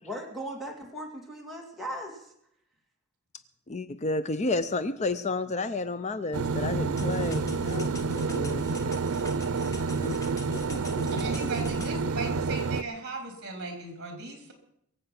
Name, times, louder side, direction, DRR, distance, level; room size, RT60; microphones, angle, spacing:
voice 1, 0.0-2.3, equal, ahead, -3 dB, 2.4 m, -38 dB
voice 2, 3.7-9.1 10.0-10.2 11.0-11.5, left 3 dB, 30° left, 12 dB, 0.5 m, -32 dB
sound 1, 6.3-12.8, right 4 dB, 90° right, 0.6 m, -29 dB
sound 2, 7.0-12.0, left 2 dB, 15° left, 1.1 m, -46 dB
voice 3, 11.1-14.5, right 3 dB, 50° right, 4 dB, 3.6 m, -37 dB
23.0 x 7.9 x 5.9 m, 0.73 s
head